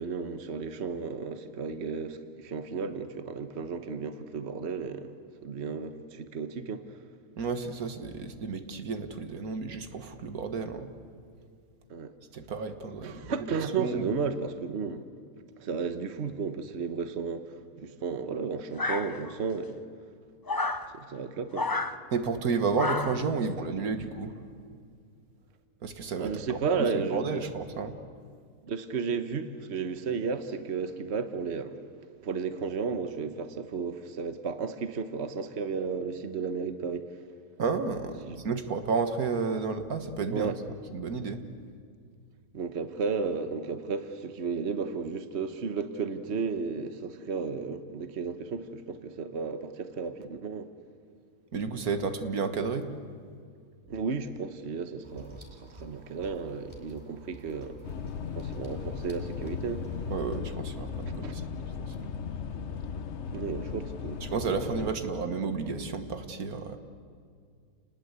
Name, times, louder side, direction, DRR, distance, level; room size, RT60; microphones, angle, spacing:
voice 1, 0.0-5.1 5.4-6.8 11.9-12.1 13.0-15.0 15.6-19.9 20.9-21.7 23.4-23.7 26.2-27.5 28.6-31.9 32.2-37.1 38.2-38.4 40.3-40.6 42.5-50.7 53.9-57.8 58.3-60.1 61.2-61.3 63.3-64.3 64.7-64.9, right 5 dB, 50° right, 1.4 m, -33 dB
voice 2, 7.4-10.9 12.3-13.3 13.8-14.0 22.1-24.4 25.8-26.6 27.1-27.9 37.6-40.5 40.9-41.4 51.5-52.9 60.1-61.4 61.8-61.9 64.3-66.8, right 4 dB, 85° right, 1.9 m, -31 dB
sound 1, 18.8-19.5 20.5-20.9 21.5-22.0 22.8-23.3, left 3 dB, 25° left, 0.5 m, -30 dB
sound 2, 55.0-60.4, right 1 dB, 20° right, 3.5 m, -49 dB
sound 3, 57.8-64.9, left 6 dB, 55° left, 1.1 m, -37 dB
29.0 x 20.0 x 8.2 m
omnidirectional pair, 1.5 m